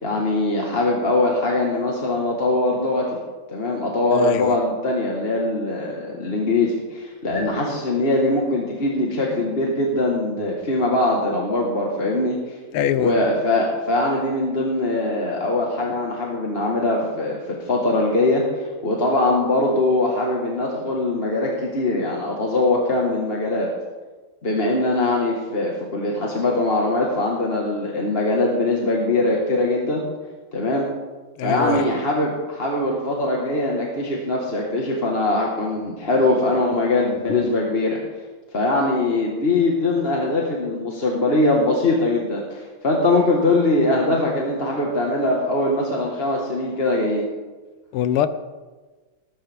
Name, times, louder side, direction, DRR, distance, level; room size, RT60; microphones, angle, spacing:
voice 1, 0.0-3.2 3.5-12.6 13.0-23.7 24.4-30.0 30.5-30.9 31.4-38.0 38.5-47.2, left 2 dB, 30° left, -2 dB, 1.5 m, -22 dB
voice 2, 4.1-4.6 12.7-13.2 31.4-31.9 47.9-48.3, left 11 dB, 85° left, 12 dB, 1.6 m, -22 dB
19.5 x 11.0 x 3.5 m, 1.3 s
omnidirectional pair, 2.3 m